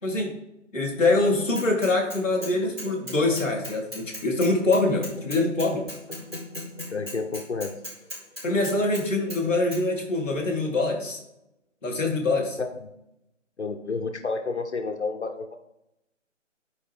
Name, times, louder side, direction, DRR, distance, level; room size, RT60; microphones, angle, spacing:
voice 1, 0.0-0.3 0.7-5.8 8.4-11.2 11.8-12.6, left 2 dB, 10° left, -11 dB, 1.3 m, -24 dB
sound 1, 1.0-8.9, left 2 dB, 45° left, 1.3 m, -44 dB
Bicycle / Mechanisms, 1.5-2.5 2.8-9.0 9.3-9.4 9.7-9.8, equal, 20° right, 3.1 m, -37 dB
voice 2, 6.9-7.8 12.8-12.9 13.6-15.6, left 4 dB, 60° left, 6 dB, 0.9 m, -30 dB
11.5 x 4.8 x 3.6 m, 0.86 s
figure-of-eight pair, 175°, 38 cm